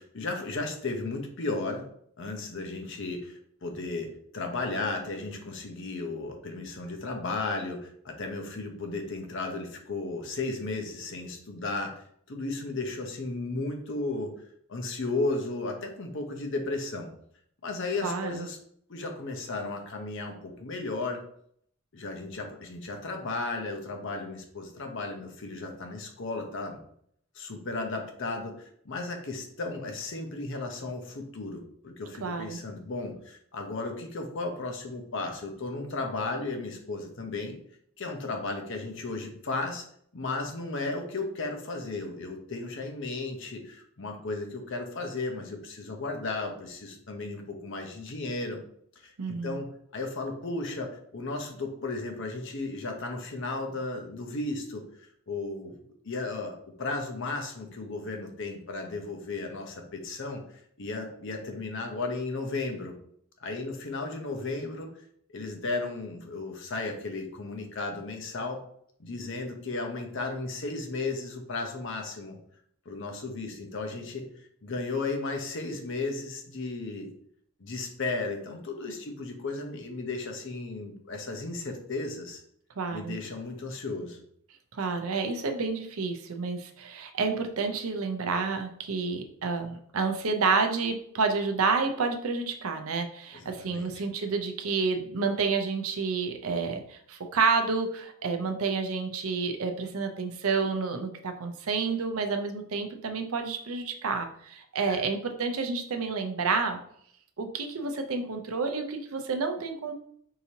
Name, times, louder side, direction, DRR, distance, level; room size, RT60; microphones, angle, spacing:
voice 1, 0.0-1.8 2.2-14.3 14.7-17.1 17.6-18.6 18.9-21.2 21.9-26.8 27.3-37.6 38.0-39.8 40.1-48.6 49.0-55.8 56.0-60.4 60.8-63.0 63.4-64.9 65.3-68.6 69.0-72.4 72.9-74.3 74.6-77.1 77.6-82.4 82.9-84.2 93.3-94.0 104.8-105.0, left 3 dB, 60° left, 3 dB, 0.7 m, -34 dB
voice 2, 18.0-18.5 32.2-32.6 49.2-49.6 82.8-83.2 84.7-106.8 107.4-109.9, right 4 dB, 75° right, 6 dB, 0.6 m, -29 dB
4.7 x 2.8 x 2.8 m, 0.65 s
head